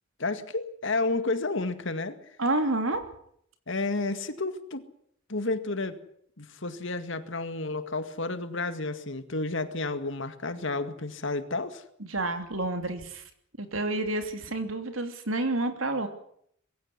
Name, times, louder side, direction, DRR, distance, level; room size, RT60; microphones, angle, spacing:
voice 1, 0.2-2.2 3.7-4.9 5.3-6.0 6.4-11.8, left 3 dB, 60° left, 10 dB, 2.1 m, -31 dB
voice 2, 2.4-3.0 12.1-13.2 13.6-16.1, right 2 dB, 75° right, 7 dB, 3.1 m, -29 dB
22.0 x 16.0 x 9.8 m, 0.68 s
head